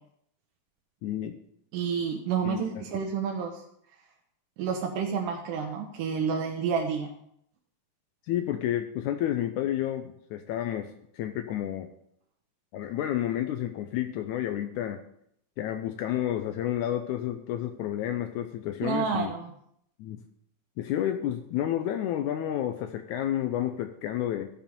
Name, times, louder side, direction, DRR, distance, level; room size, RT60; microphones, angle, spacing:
voice 1, 1.0-1.4 2.4-2.6 8.3-11.9 12.7-15.0 15.6-19.3 20.0-20.2 20.8-24.5, left 11 dB, 80° left, 7 dB, 1.9 m, -30 dB
voice 2, 1.7-3.5 4.6-7.1 18.8-19.5, right 6 dB, 80° right, 2 dB, 2.4 m, -29 dB
14.5 x 5.0 x 5.2 m, 0.71 s
omnidirectional pair, 3.8 m